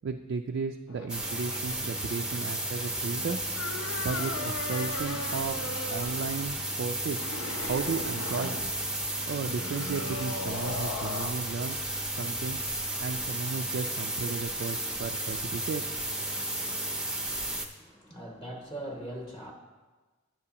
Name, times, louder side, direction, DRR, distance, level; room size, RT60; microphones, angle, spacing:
voice 1, 0.0-3.4 4.0-5.6 5.9-7.3 7.6-8.6 9.3-11.8 12.0-12.6 13.0-15.8, right 5 dB, 60° right, 4 dB, 0.3 m, -34 dB
sound 1, 0.9-11.3, left 3 dB, 75° left, 0.6 m, -39 dB
sound 2, 1.1-17.7, right 1 dB, 5° right, 0.5 m, -33 dB
voice 2, 17.8-19.5, right 1 dB, 25° left, 0 dB, 0.8 m, -40 dB
11.0 x 7.5 x 2.9 m, 1.3 s
head